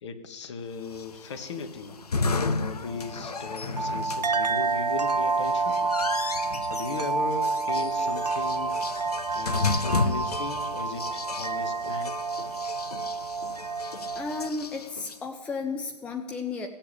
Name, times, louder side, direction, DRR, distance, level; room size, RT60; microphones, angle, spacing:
voice 1, 0.0-5.9 6.6-8.8 9.3-12.1, left 4 dB, 45° left, 8 dB, 1.4 m, -37 dB
sound 1, 0.9-15.2, left 4 dB, 70° left, 0.9 m, -33 dB
sound 2, 2.9-14.5, right 4 dB, 85° right, 0.5 m, -29 dB
voice 2, 14.2-16.7, left 4 dB, 5° left, 4 dB, 0.5 m, -33 dB
17.0 x 7.2 x 7.2 m, 1.4 s
figure-of-eight pair, 120°, 20 cm